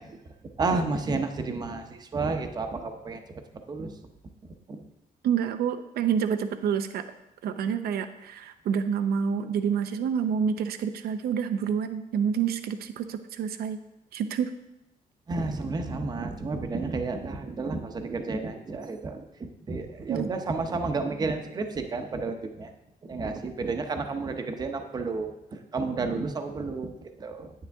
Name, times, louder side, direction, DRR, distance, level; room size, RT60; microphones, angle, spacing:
voice 1, 0.6-3.2 3.7-3.9 4.7-4.8 15.3-22.7 23.0-27.5, right 3 dB, 25° right, 6 dB, 0.8 m, -31 dB
voice 2, 5.2-7.0 7.4-13.8 14.1-14.5 20.1-20.3, right 7 dB, 85° right, 10 dB, 0.7 m, -28 dB
9.6 x 9.6 x 3.5 m, 0.90 s
cardioid pair, 175°, 16 cm